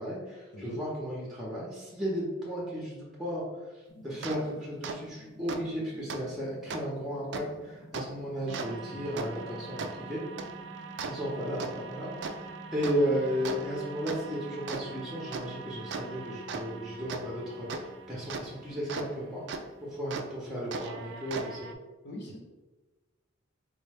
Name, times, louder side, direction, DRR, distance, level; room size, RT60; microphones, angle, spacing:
voice 1, 0.0-3.4 3.7-10.2 11.0-19.5 19.8-21.7, equal, ahead, -5 dB, 0.6 m, -34 dB
sound 1, 3.9-20.4, left 1 dB, 75° left, 1.0 m, -53 dB
sound 2, 4.2-4.4 4.8-5.0 5.5-5.6 6.1-6.2 6.7-6.8 7.3-7.4 7.9-8.0 8.5-19.1 19.5-19.6 20.1-20.2 20.7-21.7, right 4 dB, 60° right, 0.3 m, -39 dB
voice 2, 22.0-22.4, left 1 dB, 55° left, -1 dB, 0.8 m, -42 dB
3.9 x 2.1 x 3.3 m, 1.2 s
head